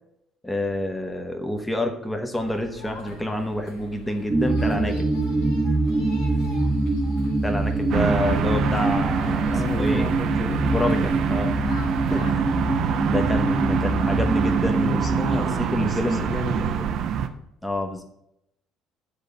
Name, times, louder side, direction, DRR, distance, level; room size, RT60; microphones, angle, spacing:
voice 1, 0.4-5.1 5.6-5.8 7.4-10.1 10.7-12.7 13.1-15.1 15.4-16.2 17.6-18.0, left 1 dB, 10° left, 4 dB, 1.2 m, -28 dB
sound 1, 2.4-12.3, left 2 dB, 70° left, 1.5 m, -41 dB
sound 2, 4.3-15.4, right 2 dB, 20° right, 1.0 m, -24 dB
sound 3, 7.9-17.3, right 8 dB, 55° right, 0.6 m, -26 dB
voice 2, 9.5-11.2 14.8-16.9, left 3 dB, 35° left, 3 dB, 1.1 m, -33 dB
8.3 x 3.9 x 6.7 m, 0.79 s
figure-of-eight pair, 55°, 0 cm